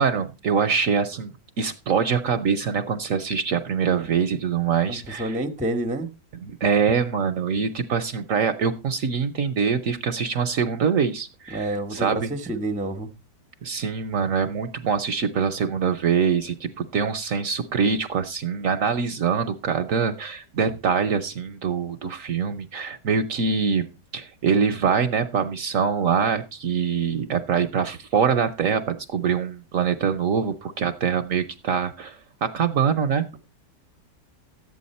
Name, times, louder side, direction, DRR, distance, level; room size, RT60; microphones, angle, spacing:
voice 1, 0.0-1.3 1.6-5.4 6.4-12.3 13.6-23.9 24.1-33.3, right 6 dB, 60° right, 1.0 m, -24 dB
voice 2, 4.9-6.1 11.5-13.1, right 1 dB, 5° right, 0.6 m, -28 dB
12.0 x 8.5 x 4.2 m
omnidirectional pair, 1.9 m